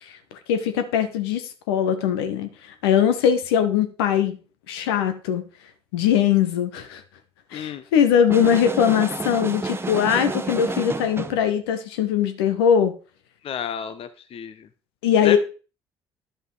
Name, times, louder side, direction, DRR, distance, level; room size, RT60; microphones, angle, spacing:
voice 1, 0.5-4.4 4.7-5.4 5.9-7.0 7.5-12.9 15.0-15.4, left 8 dB, 75° left, 9 dB, 0.9 m, -21 dB
voice 2, 7.5-7.8 13.4-14.7 15.2-15.4, left 9 dB, 45° left, 11 dB, 0.8 m, -30 dB
sound 1, 8.3-11.5, right 3 dB, 20° right, 0.8 m, -30 dB
11.0 x 5.4 x 4.0 m, 0.35 s
figure-of-eight pair, 50°, 13 cm